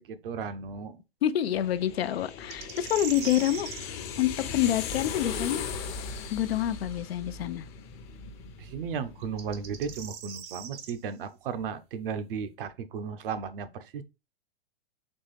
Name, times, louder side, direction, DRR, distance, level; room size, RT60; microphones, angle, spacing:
voice 1, 0.1-1.0 8.6-14.0, right 6 dB, 60° right, 0.7 m, -35 dB
voice 2, 1.2-3.7 4.2-5.7 6.3-7.7, left 12 dB, 70° left, 0.5 m, -27 dB
sound 1, 1.5-10.1, left 6 dB, 35° left, 0.7 m, -39 dB
sound 2, 2.5-3.9 7.0-7.1 9.2-10.9, right 8 dB, 20° right, 0.5 m, -40 dB
4.3 x 3.0 x 3.3 m
hypercardioid pair, 125°, 32 cm